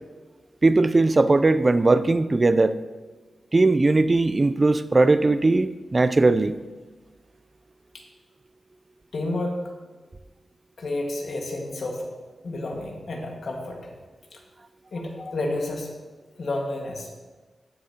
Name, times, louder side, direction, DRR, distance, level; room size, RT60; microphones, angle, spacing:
voice 1, 0.6-2.8 3.5-6.6, right 2 dB, 35° right, 12 dB, 0.4 m, -19 dB
voice 2, 9.1-9.6 10.8-12.1 12.4-13.9 14.3-14.4 14.9-15.9 16.4-17.2, left 2 dB, 70° left, 0 dB, 1.7 m, -30 dB
14.5 x 6.5 x 2.9 m, 1.3 s
cardioid pair, 65°, 0 cm